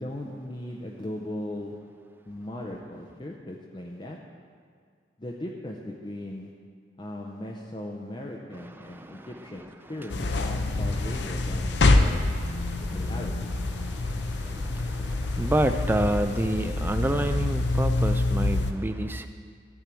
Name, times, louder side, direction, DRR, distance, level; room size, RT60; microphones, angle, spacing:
voice 1, 0.0-1.9 2.3-4.3 5.2-6.6 7.0-12.2 12.8-13.5, left 1 dB, 25° left, -1 dB, 0.6 m, -38 dB
voice 2, 8.6-9.3 9.6-9.7 10.0-10.1 10.6-11.3 11.6-12.1 12.4-13.2 13.7-19.3, right 1 dB, 10° right, 8 dB, 0.4 m, -30 dB
sound 1, 10.1-18.7, left 2 dB, 65° left, 0.7 m, -26 dB
13.5 x 4.5 x 8.4 m, 2.1 s
head